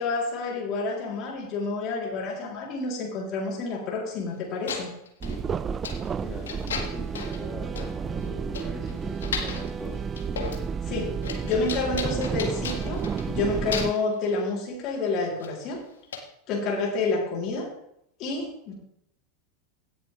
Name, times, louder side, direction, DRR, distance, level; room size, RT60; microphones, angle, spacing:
voice 1, 0.0-4.9 10.9-11.1 11.4-15.8 16.5-17.7 18.2-18.7, left 3 dB, 45° left, -2 dB, 3.6 m, -29 dB
sound 1, 4.3-4.4 4.7-5.4 5.8-6.1 6.5-7.4 7.8-7.9 8.2-8.3 8.5-9.7 10.1-10.7 10.9-13.4 13.7-14.1 15.4-15.5 16.1-16.2, left 6 dB, 75° left, 1.7 m, -35 dB
sound 2, 5.2-13.9, right 6 dB, 25° right, 0.4 m, -31 dB
voice 2, 6.2-10.0, left 2 dB, 5° left, -2 dB, 2.2 m, -41 dB
16.5 x 6.8 x 3.5 m, 0.74 s
figure-of-eight pair, 85°, 0 cm